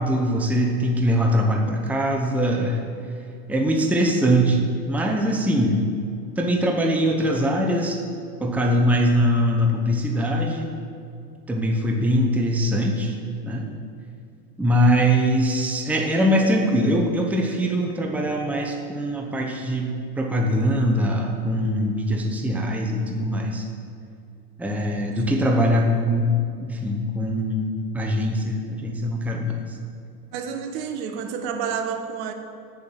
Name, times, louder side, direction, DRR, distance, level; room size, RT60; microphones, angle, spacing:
voice 1, 0.0-2.8 3.5-5.9 6.4-8.0 8.4-10.7 11.5-13.2 13.4-13.7 14.6-23.7 24.6-26.3 26.6-29.8, equal, 5° right, 1 dB, 0.9 m, -22 dB
voice 2, 30.3-32.3, right 7 dB, 50° right, 6 dB, 1.1 m, -29 dB
7.4 x 7.0 x 8.3 m, 2.4 s
supercardioid pair, 120°, 49 cm